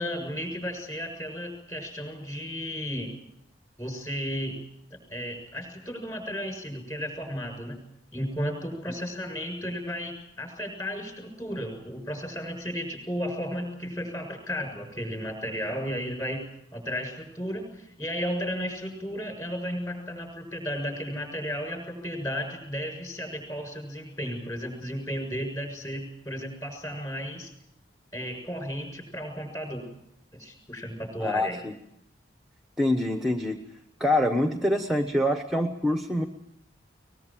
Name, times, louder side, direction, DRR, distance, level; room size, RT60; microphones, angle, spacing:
voice 1, 0.0-3.2 3.8-4.6 5.1-7.8 8.1-16.4 16.7-27.5 28.1-29.9 30.3-31.6, equal, 20° left, 6 dB, 6.9 m, -34 dB
voice 2, 31.2-31.7 32.8-33.6 34.0-36.3, left 1 dB, ahead, 6 dB, 1.1 m, -25 dB
22.5 x 21.0 x 7.5 m, 0.76 s
head